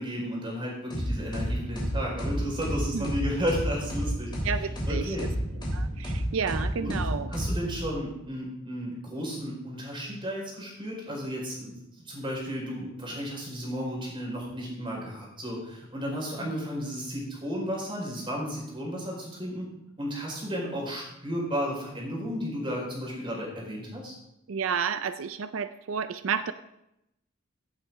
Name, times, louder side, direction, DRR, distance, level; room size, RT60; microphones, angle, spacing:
voice 1, 0.0-5.3 6.8-7.0 7.3-11.7 12.0-19.7 20.0-24.2, equal, 25° right, -2 dB, 4.6 m, -33 dB
sound 1, 0.9-8.1, equal, 20° left, 3.3 m, -31 dB
voice 2, 4.4-5.3 5.7-7.3 16.4-16.5 24.5-26.5, right 6 dB, 90° right, 12 dB, 0.5 m, -31 dB
16.5 x 8.5 x 3.6 m, 0.84 s
head